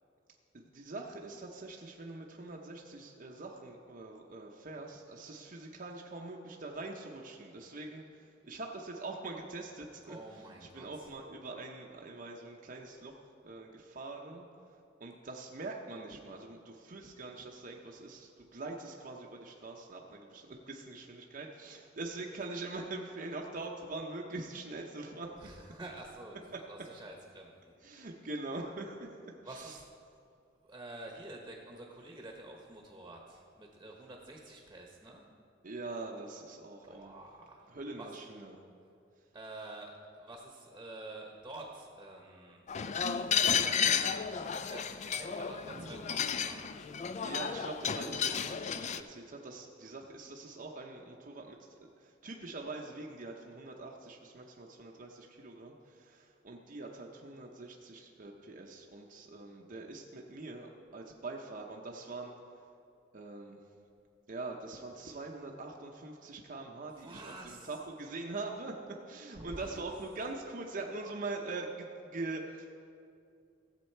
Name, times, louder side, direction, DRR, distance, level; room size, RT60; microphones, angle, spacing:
voice 1, 0.5-13.2 13.4-14.5 15.0-25.3 26.5-26.6 27.8-29.8 35.6-37.2 37.7-38.6 45.7-46.3 47.2-62.4 63.1-63.6 64.3-72.7, right 3 dB, 45° right, 0 dB, 0.7 m, -43 dB
voice 2, 10.0-11.1 25.3-26.4 26.7-27.5 27.9-28.1 29.4-29.8 30.6-35.2 36.8-37.7 38.0-38.1 39.3-46.2 46.4-46.7 67.0-67.7 69.4-69.8, right 2 dB, 15° right, 0 dB, 1.0 m, -48 dB
sound 1, 42.7-49.0, left 7 dB, 35° left, 0.4 m, -32 dB
15.5 x 7.5 x 4.5 m, 2.5 s
head